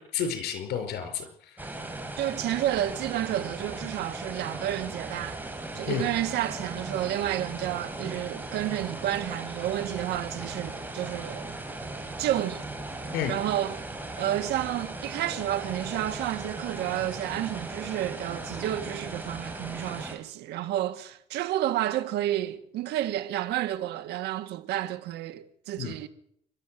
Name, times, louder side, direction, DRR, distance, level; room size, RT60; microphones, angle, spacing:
voice 1, 0.1-1.7 5.9-6.1 13.1-13.4 25.8-25.9, left 8 dB, 75° left, 5.3 m, -31 dB
sound 1, 1.6-20.2, right 2 dB, 10° right, 4.7 m, -38 dB
voice 2, 2.2-5.4 5.7-11.5 12.2-12.7 13.3-13.8 14.2-26.1, right 13 dB, 80° right, 2.0 m, -30 dB
28.5 x 12.5 x 7.8 m
cardioid pair, 110°, 17 cm